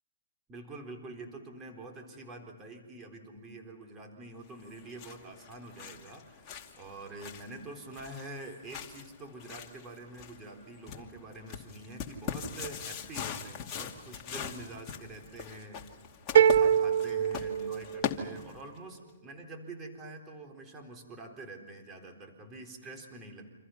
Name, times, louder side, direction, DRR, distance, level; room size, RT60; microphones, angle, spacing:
voice 1, 0.5-16.1 16.3-23.5, right 2 dB, 20° right, 2 dB, 4.0 m, -46 dB
sound 1, 4.6-18.8, left 7 dB, 30° left, 2.6 m, -41 dB
sound 2, 16.4-18.4, right 9 dB, 65° right, 0.8 m, -24 dB
29.5 x 27.0 x 5.8 m, 1.1 s
hypercardioid pair, 135°, 0 cm